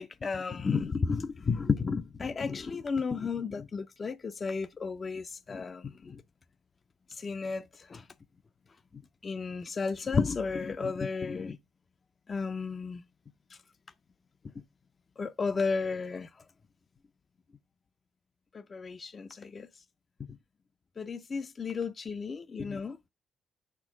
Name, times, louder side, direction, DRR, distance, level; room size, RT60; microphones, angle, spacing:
voice 1, 0.0-6.2 7.2-8.0 9.2-11.6 12.3-13.0 15.2-16.3 18.7-19.7 21.0-23.0, left 5 dB, 35° left, 0.4 m, -33 dB
5.9 x 4.5 x 5.9 m
cardioid pair, 90°, 0 cm